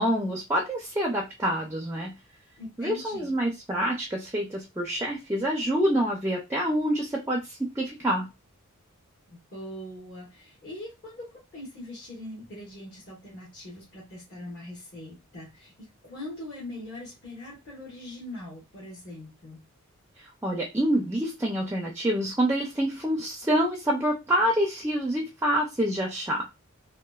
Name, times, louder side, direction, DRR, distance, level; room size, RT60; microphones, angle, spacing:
voice 1, 0.0-2.1 2.8-8.3 20.4-26.5, equal, 10° right, 1 dB, 0.4 m, -27 dB
voice 2, 2.6-3.4 9.3-19.6, left 1 dB, 50° left, -8 dB, 1.2 m, -42 dB
2.9 x 2.1 x 2.2 m, 0.24 s
head